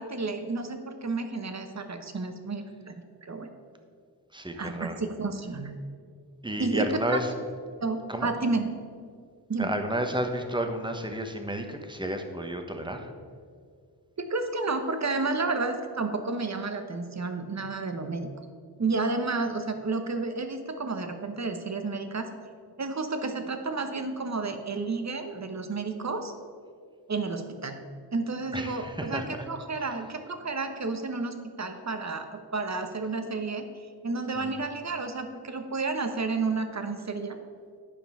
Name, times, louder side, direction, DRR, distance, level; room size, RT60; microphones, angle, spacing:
voice 1, 0.0-3.5 4.5-5.7 6.6-7.2 7.8-8.6 9.5-9.7 14.2-18.3 18.8-22.3 22.8-26.3 27.1-27.8 28.1-33.7 34.0-37.4, right 3 dB, 40° right, 7 dB, 1.0 m, -31 dB
voice 2, 4.3-5.0 6.4-7.3 8.1-8.3 9.6-13.1 28.5-29.3 29.7-30.0 34.3-34.6, right 1 dB, 10° right, 5 dB, 1.1 m, -31 dB
9.6 x 5.4 x 5.6 m, 2.1 s
cardioid pair, 65°, 40 cm